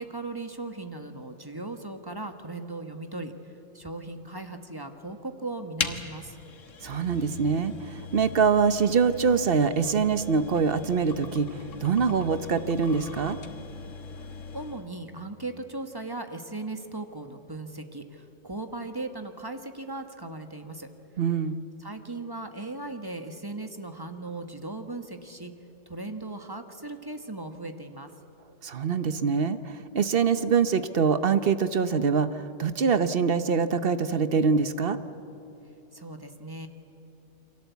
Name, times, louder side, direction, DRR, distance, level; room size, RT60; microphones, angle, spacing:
voice 1, 0.0-3.3 3.7-6.4 14.2-14.3 14.5-20.9 21.8-25.5 25.9-28.1 35.9-36.7, right 2 dB, 20° right, 6 dB, 1.3 m, -38 dB
sound 1, 5.8-14.9, left 5 dB, 85° left, 1.7 m, -39 dB
voice 2, 6.8-11.5 11.8-13.4 21.2-21.7 28.6-35.0, right 5 dB, 50° right, 12 dB, 1.0 m, -24 dB
28.5 x 23.0 x 8.3 m, 2.9 s
omnidirectional pair, 1.3 m